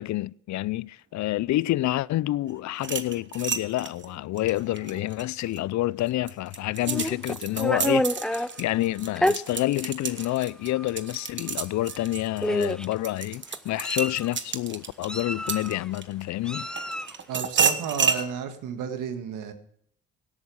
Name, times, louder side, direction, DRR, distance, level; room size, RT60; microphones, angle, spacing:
voice 1, 0.0-16.7, left 16 dB, 65° left, 0.5 m, -28 dB
sound 1, 2.7-5.6 6.1-16.2 16.8-18.2, right 6 dB, 40° right, 1.3 m, -30 dB
Meow, 6.8-8.5 9.2-9.4 10.2-10.3 10.7-10.9 11.9-12.0 12.4-12.9 13.5-14.3 15.1-15.8 16.5-17.2, left 1 dB, 5° left, 0.5 m, -28 dB
voice 2, 17.3-19.5, right 7 dB, 90° right, 1.9 m, -32 dB
17.0 x 8.6 x 6.3 m
cardioid pair, 90°, 30 cm